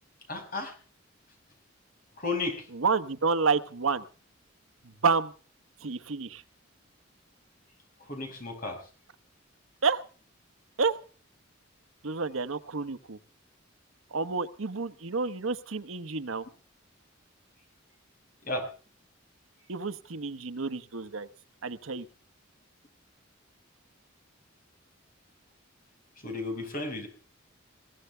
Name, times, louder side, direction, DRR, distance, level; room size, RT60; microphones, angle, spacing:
voice 1, 0.3-0.7 2.2-2.7 8.1-8.8 18.4-18.7 26.2-27.1, left 2 dB, 45° left, 4 dB, 5.4 m, -33 dB
voice 2, 2.7-4.0 5.0-5.3 5.8-6.4 9.8-10.0 10.8-11.0 12.0-13.2 14.1-16.4 19.7-21.3 21.6-22.1, right 4 dB, 85° right, 12 dB, 1.0 m, -29 dB
22.0 x 16.0 x 3.4 m, 0.38 s
head